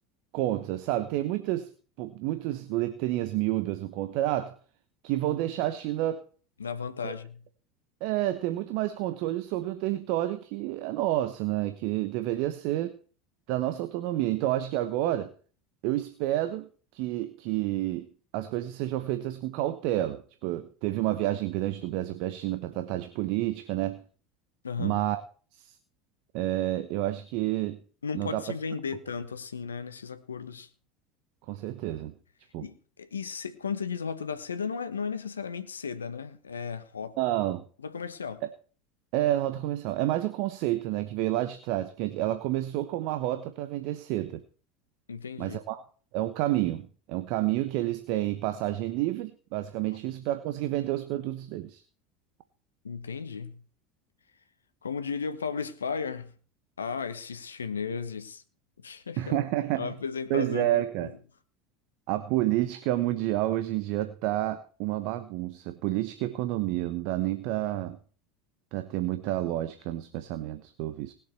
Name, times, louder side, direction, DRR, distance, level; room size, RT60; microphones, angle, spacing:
voice 1, 0.3-1.7 2.0-4.5 5.0-6.2 7.0-7.1 8.0-13.0 13.5-15.3 15.8-18.1 18.3-24.0 24.8-25.2 25.5-25.7 26.3-27.8 28.1-28.4 31.5-32.1 32.5-32.7 37.2-37.6 39.1-44.4 45.4-45.8 46.1-51.8 59.2-59.9 60.3-61.1 62.1-68.0 68.7-71.1, right 15 dB, 60° right, 1.1 m, -29 dB
voice 2, 6.6-7.4 24.6-25.0 28.0-30.7 32.6-37.2 37.8-38.4 45.1-45.6 52.8-53.6 54.8-56.3 56.8-58.4 58.8-59.5 59.8-61.2, left 6 dB, 90° left, 1.2 m, -35 dB
19.5 x 7.4 x 4.5 m
hypercardioid pair, 80°, 0 cm